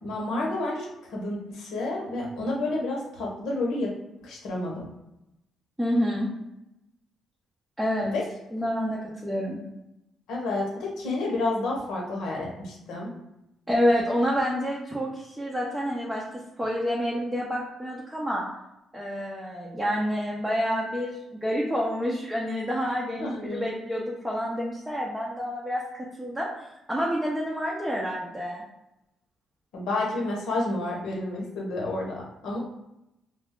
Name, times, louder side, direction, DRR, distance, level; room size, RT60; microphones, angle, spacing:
voice 1, 0.0-3.9 4.2-4.9 8.0-8.2 10.3-13.1 23.2-23.7 29.7-32.6, left 2 dB, 80° left, -2 dB, 0.9 m, -30 dB
voice 2, 5.8-6.3 7.8-8.1 8.5-9.6 13.7-16.2 16.6-18.5 18.9-26.5 26.9-28.6, equal, 10° right, -4 dB, 0.6 m, -28 dB
2.3 x 2.3 x 3.6 m, 0.88 s
cardioid pair, 90°, 0 cm